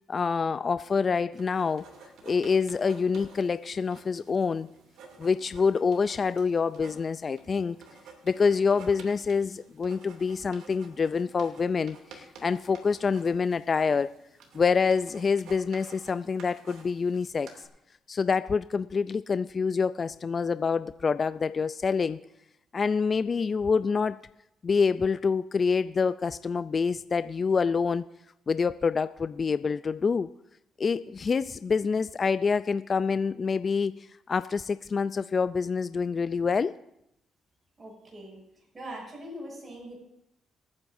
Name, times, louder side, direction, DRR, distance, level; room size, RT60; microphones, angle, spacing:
voice 1, 0.1-1.9 2.2-4.7 5.2-7.8 8.3-14.1 14.5-17.5 18.1-22.2 22.7-24.2 24.6-28.0 28.5-30.3 30.8-36.7, left 5 dB, 40° left, 13 dB, 0.3 m, -26 dB
sound 1, 1.3-17.7, right 4 dB, 85° right, 2.6 m, -52 dB
voice 2, 37.8-38.4 38.7-40.0, right 1 dB, 30° right, -3 dB, 6.4 m, -41 dB
27.5 x 9.6 x 2.6 m, 0.83 s
cardioid pair, 90°, 0 cm